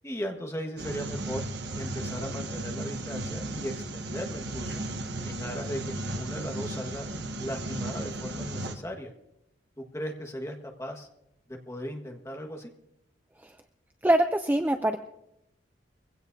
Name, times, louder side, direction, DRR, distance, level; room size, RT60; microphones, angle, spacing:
voice 1, 0.0-1.4 1.8-4.8 5.2-7.1 7.4-9.1 9.8-11.1 11.5-12.7, equal, 15° left, 2 dB, 1.5 m, -37 dB
sound 1, 0.8-8.8, right 2 dB, 65° right, 1.2 m, -35 dB
voice 2, 14.0-15.0, right 1 dB, 10° right, 7 dB, 0.4 m, -24 dB
22.5 x 16.5 x 2.7 m, 0.85 s
head